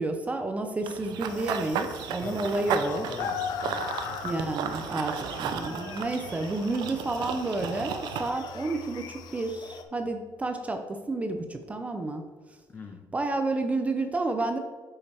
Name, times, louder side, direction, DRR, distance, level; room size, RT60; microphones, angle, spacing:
voice 1, 0.0-3.1 4.2-12.2 13.1-14.6, right 2 dB, 20° right, 6 dB, 0.5 m, -30 dB
Run / Bird vocalization bird call bird song, 0.9-8.3, right 8 dB, 80° right, 0.6 m, -35 dB
sound 1, 1.3-9.8, left 7 dB, 75° left, 0.6 m, -40 dB
voice 2, 2.2-3.9 12.7-13.0, left 4 dB, 30° left, 6 dB, 0.8 m, -42 dB
sound 2, 6.6-11.2, right 5 dB, 40° right, 1.7 m, -54 dB
8.5 x 5.5 x 3.4 m, 1.4 s
cardioid pair, 130°, 7 cm